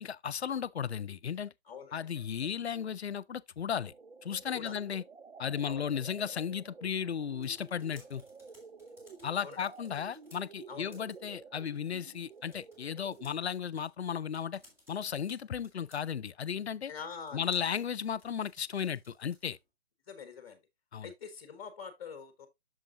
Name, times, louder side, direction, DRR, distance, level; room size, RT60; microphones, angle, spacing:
voice 1, 0.0-1.5 1.9-3.9 4.2-5.0 5.4-8.2 9.2-14.6 14.9-16.9 17.3-19.6 20.9-21.1, left 8 dB, 80° left, 0.5 m, -35 dB
voice 2, 1.7-2.0 2.4-2.5 4.5-4.8 5.6-5.9 8.0-8.1 9.4-9.6 10.7-11.0 16.9-17.5 20.1-20.6 21.0-22.5, left 6 dB, 35° left, 1.1 m, -45 dB
sound 1, 3.6-13.5, right 5 dB, 85° right, 0.7 m, -52 dB
sound 2, 7.2-19.7, left 1 dB, 5° right, 2.3 m, -64 dB
8.5 x 6.4 x 2.4 m
figure-of-eight pair, 135°, 32 cm